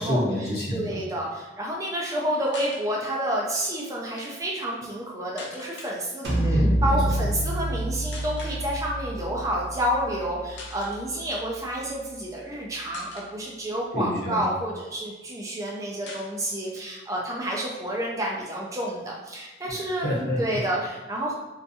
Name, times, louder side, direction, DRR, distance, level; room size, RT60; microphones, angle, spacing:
voice 1, 0.0-1.0 6.4-7.2 13.9-14.4 19.7-20.4, equal, 55° left, -7 dB, 0.9 m, -28 dB
voice 2, 0.7-6.3 6.8-20.1 20.4-21.3, right 1 dB, 20° right, -2 dB, 0.3 m, -29 dB
sound 1, 2.5-2.8 4.0-4.3 5.4-6.0 7.0-7.2 8.1-8.6 9.6-9.8 10.2-10.3 10.5-11.0 11.9-12.5 12.9-13.3 13.9-15.0 15.3-15.4 15.6-15.7 16.1-16.8 17.1-17.2 17.5-18.6, left 2 dB, 85° left, 0.5 m, -43 dB
sound 2, 6.2-11.9, right 1 dB, 70° right, 0.6 m, -28 dB
2.5 x 2.2 x 2.6 m, 1.1 s
head